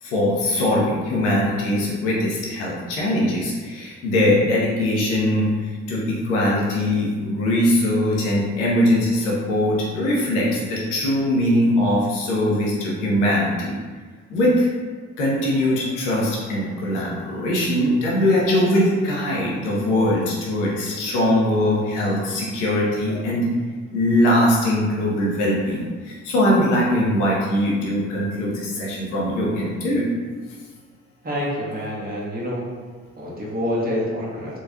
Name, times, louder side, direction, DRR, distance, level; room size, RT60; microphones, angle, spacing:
voice 1, 0.0-13.7 14.3-14.7 15.2-23.5 23.9-30.0, left 1 dB, 85° left, -4 dB, 0.8 m, -21 dB
voice 2, 31.2-32.6 33.2-34.6, equal, 25° right, -5 dB, 1.4 m, -27 dB
3.7 x 3.1 x 2.5 m, 1.4 s
hypercardioid pair, 45°, 35 cm